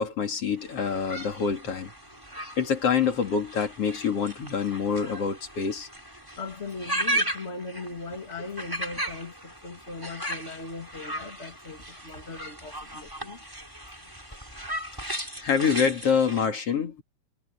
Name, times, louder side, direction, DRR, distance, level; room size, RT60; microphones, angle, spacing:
voice 1, 0.0-1.9 2.6-5.9 15.4-17.0, left 6 dB, 40° left, 2.6 m, -26 dB
sound 1, 0.6-16.5, right 1 dB, 5° right, 6.6 m, -36 dB
voice 2, 6.4-13.4, left 3 dB, 20° left, 1.7 m, -39 dB
omnidirectional pair, 5.8 m